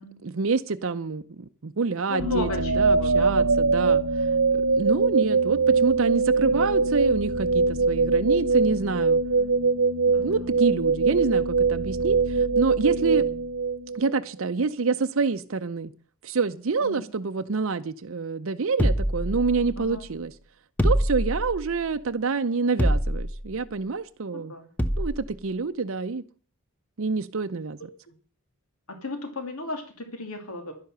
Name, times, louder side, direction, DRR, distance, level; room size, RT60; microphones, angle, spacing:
voice 1, 0.2-4.3 4.7-9.2 10.2-13.2 13.9-15.9 16.2-20.3 20.8-24.5 25.0-26.2 27.0-27.8, right 4 dB, 60° right, 9 dB, 0.6 m, -27 dB
voice 2, 2.1-3.4 10.1-10.4 16.8-17.1 19.8-20.1 24.3-24.7 28.1-28.2 28.9-30.7, left 2 dB, 75° left, 5 dB, 2.7 m, -35 dB
sound 1, 2.2-14.3, right 4 dB, 80° right, 1.0 m, -22 dB
sound 2, 18.8-19.9 20.8-21.7 22.8-23.5 24.8-25.3, equal, 10° left, 0.8 m, -24 dB
11.5 x 10.5 x 6.7 m, 0.42 s
head